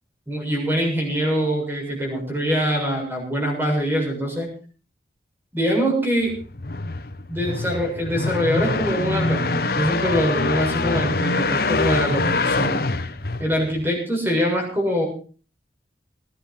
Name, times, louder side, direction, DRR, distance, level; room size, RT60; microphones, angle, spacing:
voice 1, 0.3-4.5 5.5-6.3 7.3-12.8 13.4-15.1, equal, 10° right, 0 dB, 7.2 m, -23 dB
sound 1, 6.3-13.9, left 3 dB, 55° left, 1.2 m, -24 dB
20.5 x 10.0 x 5.6 m, 0.40 s
head